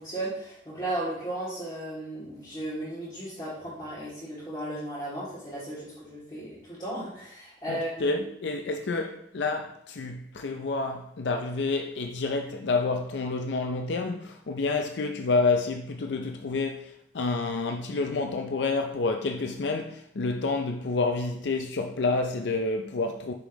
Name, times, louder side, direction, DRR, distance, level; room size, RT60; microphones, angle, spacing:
voice 1, 0.0-8.2, right 1 dB, 25° left, 2.6 m, -35 dB
voice 2, 7.7-23.3, left 3 dB, 80° left, 0.5 m, -29 dB
6.8 x 5.6 x 3.1 m
head